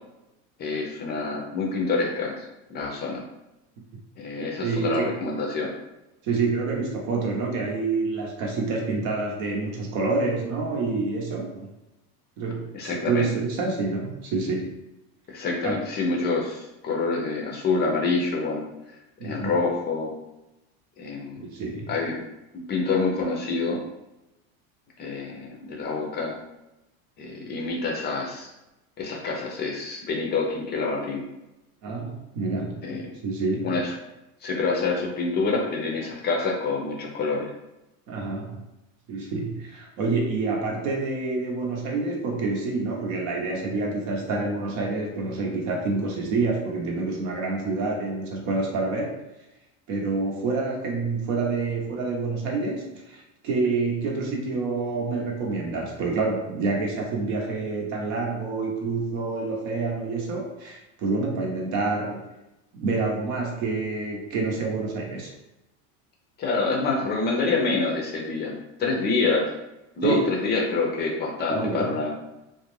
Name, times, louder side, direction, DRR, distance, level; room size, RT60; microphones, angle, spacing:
voice 1, 0.6-2.4 2.7-3.2 4.2-5.7 12.7-13.3 15.3-18.6 19.2-20.1 21.0-21.5 21.9-22.2 22.7-23.8 25.0-26.3 27.2-28.5 29.0-31.2 32.8-33.0 33.6-33.9 34.4-37.5 66.4-68.5 68.8-69.5 70.0-72.2, left 3 dB, 25° left, 0 dB, 0.4 m, -27 dB
voice 2, 4.6-5.1 6.2-11.7 12.4-14.7 15.6-15.8 19.2-19.5 21.4-21.9 31.8-33.8 38.1-38.6 39.1-49.1 49.9-62.2 62.7-65.3 70.0-70.3 71.5-71.9, right 3 dB, 65° right, 0 dB, 0.8 m, -27 dB
2.4 x 2.1 x 3.0 m, 0.95 s
supercardioid pair, 130°, 40 cm